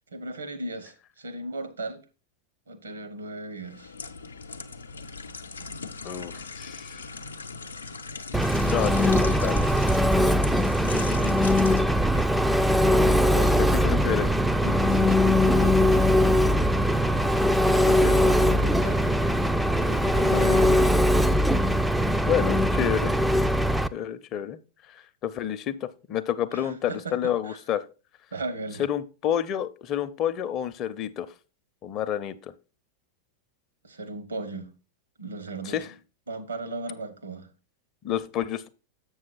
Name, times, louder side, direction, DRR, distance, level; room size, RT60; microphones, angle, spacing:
voice 1, 0.1-2.0 2.7-3.9 13.3-13.8 14.6-16.5 17.6-19.1 19.7-21.3 26.5-27.6 28.3-28.9 33.8-34.7 35.2-35.9 36.3-37.5, right 2 dB, 75° right, 1.2 m, -37 dB
sound 1, 3.6-13.6 14.0-14.2, left 4 dB, 75° left, 0.6 m, -40 dB
voice 2, 6.0-6.9 8.7-9.6 13.6-14.3 17.9-18.4 20.3-20.6 22.2-23.1 23.9-24.6 25.2-27.8 28.8-31.3 31.8-32.5 35.7-35.8 38.0-38.7, left 10 dB, 35° left, 0.6 m, -29 dB
Engine, 8.3-23.9, equal, 5° right, 0.4 m, -21 dB
7.7 x 6.3 x 4.0 m
figure-of-eight pair, 90°, 0 cm